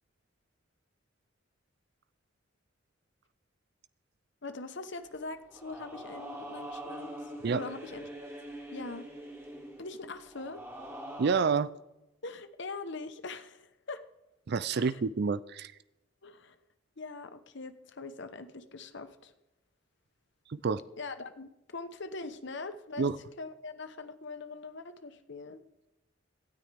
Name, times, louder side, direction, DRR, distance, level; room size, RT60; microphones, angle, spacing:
voice 1, 4.4-7.2 7.5-8.1 8.7-9.1 9.8-10.6 12.2-14.0 14.7-15.0 16.2-16.5 17.0-19.3 21.0-23.1 23.4-25.6, left 3 dB, 60° left, 10 dB, 1.0 m, -42 dB
sound 1, 5.0-11.4, right 1 dB, 15° right, 2.3 m, -44 dB
voice 2, 11.2-11.7 14.5-15.7 20.5-20.8 23.0-23.2, right 5 dB, 55° right, 16 dB, 0.4 m, -28 dB
17.5 x 13.0 x 3.5 m, 0.95 s
head